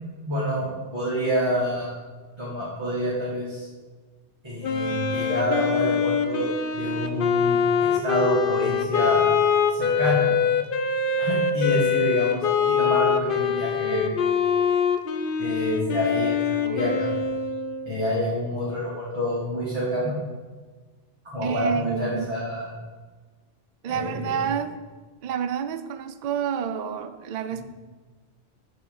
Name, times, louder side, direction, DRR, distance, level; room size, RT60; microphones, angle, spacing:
voice 1, 0.3-2.0 2.4-3.7 4.4-9.3 9.7-10.3 11.2-14.1 15.4-17.2 17.9-20.2 21.2-22.7 23.9-24.4 27.6-27.7, equal, 25° right, -9 dB, 1.7 m, -27 dB
Wind instrument woodwind instrument, 4.6-18.0, left 6 dB, 55° left, 0.7 m, -24 dB
voice 2, 21.4-22.4 23.8-24.7 25.2-27.6, right 8 dB, 60° right, 9 dB, 0.4 m, -29 dB
9.0 x 3.5 x 6.9 m, 1.4 s
omnidirectional pair, 1.2 m